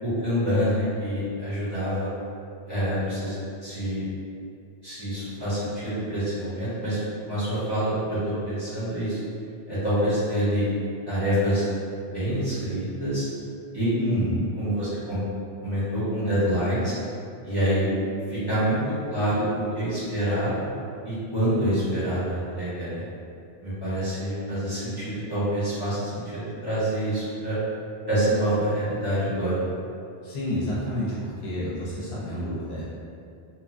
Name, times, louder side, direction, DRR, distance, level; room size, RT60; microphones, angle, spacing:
voice 1, 0.0-2.1 2.7-3.4 3.6-4.0 4.8-7.0 7.3-9.2 9.7-10.6 11.0-11.6 12.0-13.2 13.7-14.3 14.6-15.2 15.6-16.9 17.4-17.9 18.3-20.7 21.0-23.0 23.6-27.6 28.1-29.6, equal, 25° right, -14 dB, 1.0 m, -26 dB
voice 2, 13.9-14.4 30.2-32.8, equal, 70° left, -7 dB, 0.9 m, -30 dB
2.9 x 2.3 x 2.5 m, 2.4 s
omnidirectional pair, 1.1 m